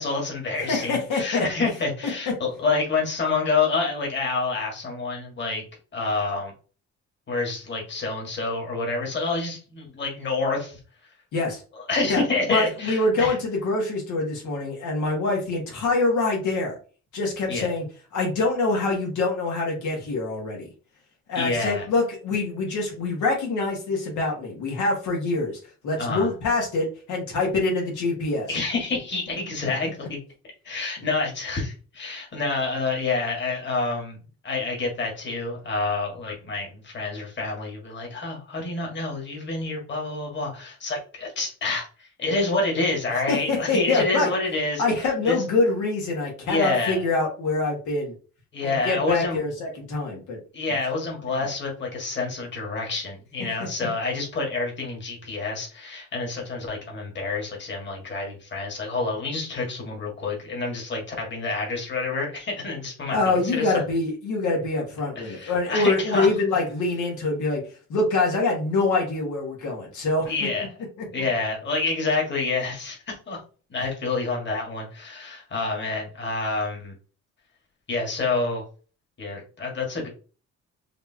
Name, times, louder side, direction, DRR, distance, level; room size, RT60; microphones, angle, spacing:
voice 1, 0.0-5.6 5.9-6.5 7.3-10.8 11.7-13.3 17.5-17.7 21.4-21.9 26.0-26.3 28.5-30.2 30.6-34.2 34.4-44.8 45.2-45.4 46.5-47.0 48.5-49.4 50.5-63.7 65.2-66.3 70.3-70.6 71.1-73.4 73.7-76.9 77.9-78.6 79.2-80.1, left 3 dB, 40° left, -1 dB, 1.8 m, -28 dB
voice 2, 0.6-1.5 11.3-11.6 12.1-12.2 12.5-16.8 17.1-17.9 18.1-20.7 21.3-25.6 25.8-28.5 43.3-44.3 44.8-48.1 48.6-50.4 63.1-67.6 67.9-70.5 71.0-71.3, left 3 dB, 85° left, -1 dB, 1.7 m, -25 dB
5.1 x 2.9 x 2.8 m, 0.36 s
cardioid pair, 135°, 29 cm